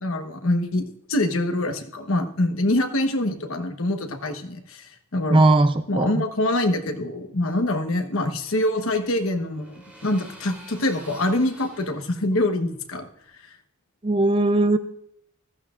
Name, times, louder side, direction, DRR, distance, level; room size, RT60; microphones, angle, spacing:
voice 1, 0.0-5.5 5.9-13.1 13.3-13.5, left 1 dB, 65° left, 6 dB, 1.2 m, -25 dB
voice 2, 5.3-6.2 14.0-14.8, right 2 dB, 25° right, 10 dB, 0.5 m, -19 dB
sound 1, 8.1-13.3, equal, 5° right, 3.1 m, -49 dB
15.0 x 13.5 x 2.4 m, 0.73 s
head